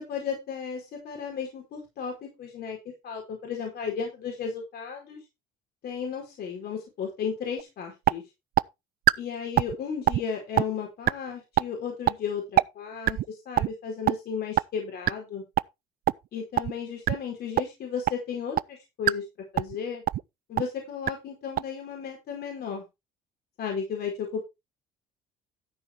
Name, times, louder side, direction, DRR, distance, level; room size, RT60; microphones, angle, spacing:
voice 1, 0.0-2.8 3.0-5.2 5.8-8.2 9.2-15.4 16.3-19.2 19.5-20.0 20.5-22.8 23.6-24.4, left 6 dB, 60° left, 1 dB, 4.7 m, -34 dB
sound 1, 7.6-7.7 8.1-8.2 8.6-8.7 9.1-9.2 9.6-9.8 10.1-10.2 10.6-10.7 11.1-11.2 11.6-11.7 12.1-12.2 12.6-12.7 13.1-13.3 13.6-13.7 14.1-14.2 14.6-14.7 15.1-15.2 15.6-15.7 16.1-16.2 16.6-16.7 17.1-17.2 17.6-17.7 18.1-18.2 18.6-18.7 19.1-19.2 19.6-19.8 20.1-20.2 20.6-20.7 21.1-21.2 21.6-21.7, right 14 dB, 55° right, 0.5 m, -21 dB
13.0 x 6.2 x 4.4 m, 0.24 s
supercardioid pair, 80°, 18 cm